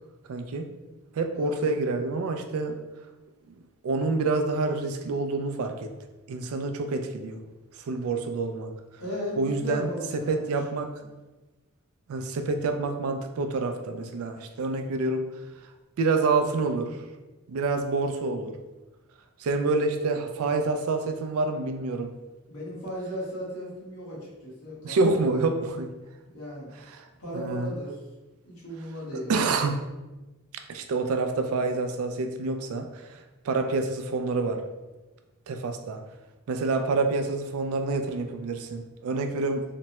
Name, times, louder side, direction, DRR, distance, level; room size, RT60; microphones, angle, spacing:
voice 1, 0.3-0.7 1.1-2.8 3.5-3.6 3.8-5.9 6.3-7.4 7.9-8.7 9.4-10.9 12.1-15.3 16.0-17.0 17.5-18.6 19.4-22.1 24.8-25.9 26.9-27.1 27.3-27.7 29.1-29.8 30.7-34.6 35.5-36.0 36.5-39.6, right 3 dB, 75° right, 6 dB, 0.3 m, -27 dB
voice 2, 1.3-1.7 9.0-10.8 22.5-25.1 26.3-26.8 27.2-28.0 28.4-29.4, equal, 80° left, -6 dB, 1.2 m, -36 dB
3.3 x 2.0 x 2.8 m, 1.1 s
head